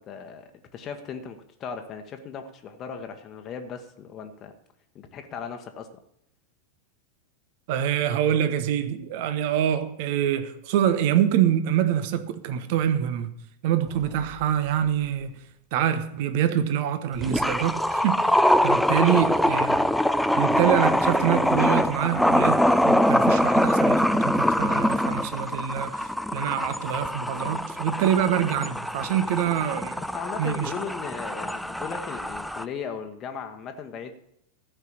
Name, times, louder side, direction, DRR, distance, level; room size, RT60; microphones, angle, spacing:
voice 1, 0.0-4.5 4.9-5.9 18.9-19.3 30.0-34.1, left 6 dB, 30° left, 1.2 m, -37 dB
voice 2, 7.7-13.3 13.6-15.3 15.7-18.2 18.6-19.9 20.4-30.0 30.4-30.7, right 10 dB, 50° right, 1.0 m, -25 dB
sound 1, 14.2-14.3 17.2-32.6, left 1 dB, ahead, 0.5 m, -23 dB
13.5 x 5.8 x 8.6 m
figure-of-eight pair, 90°, 0 cm